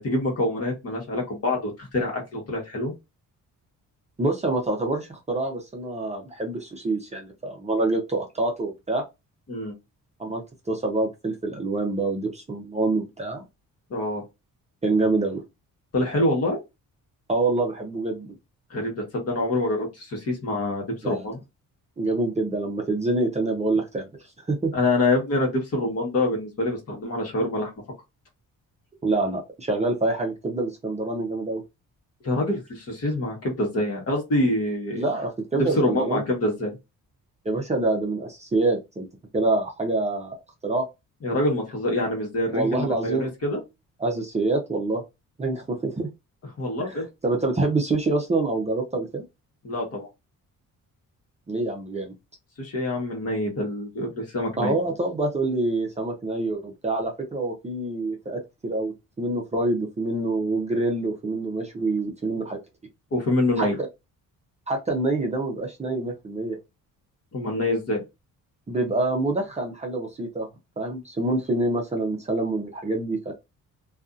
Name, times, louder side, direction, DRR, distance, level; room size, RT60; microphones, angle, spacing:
voice 1, 0.0-2.9 9.5-9.7 13.9-14.2 15.9-16.6 18.7-21.4 24.7-27.7 32.2-35.0 35.6-36.8 41.2-43.6 46.6-47.0 49.6-50.1 52.6-54.7 63.1-63.8 67.3-68.0, left 1 dB, 45° left, 1 dB, 1.2 m, -26 dB
voice 2, 4.2-9.0 10.2-13.4 14.8-15.4 17.3-18.3 21.0-21.2 22.0-24.1 24.5-24.7 29.0-31.6 35.0-36.2 37.4-39.1 39.3-40.4 40.6-40.8 42.5-43.3 44.0-45.0 45.4-46.1 46.8-49.2 51.5-52.1 54.6-62.6 63.6-63.7 64.7-66.6 68.7-70.5 70.8-73.3, right 2 dB, 20° right, 1 dB, 0.6 m, -26 dB
2.5 x 2.4 x 2.4 m, 0.23 s
cardioid pair, 135°, 34 cm